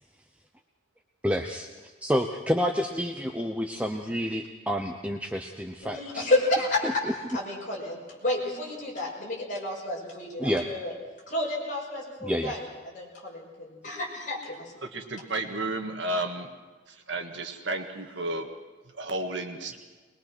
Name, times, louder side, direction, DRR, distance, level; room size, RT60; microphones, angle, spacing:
voice 1, 1.2-6.3 10.4-10.6 12.2-12.5, equal, 5° right, 4 dB, 0.7 m, -29 dB
voice 2, 5.8-10.9 11.3-14.7, left 1 dB, 40° left, -3 dB, 5.8 m, -30 dB
voice 3, 14.9-16.5 17.1-18.5 18.9-19.7, right 2 dB, 70° right, 5 dB, 1.8 m, -32 dB
22.5 x 21.0 x 6.1 m, 1.3 s
head